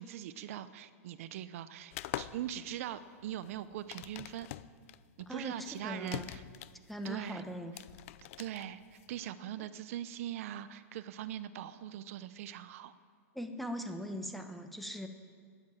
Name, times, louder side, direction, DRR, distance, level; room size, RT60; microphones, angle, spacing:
voice 1, 0.0-4.5 5.2-6.4 7.0-7.4 8.4-12.9, right 11 dB, 60° right, 14 dB, 0.7 m, -41 dB
sound 1, 1.9-9.3, left 14 dB, 55° left, 0.5 m, -44 dB
voice 2, 5.3-6.4 6.9-7.7 13.3-15.1, equal, ahead, 6 dB, 1.0 m, -40 dB
13.5 x 10.0 x 9.0 m, 2.1 s
supercardioid pair, 145°, 8 cm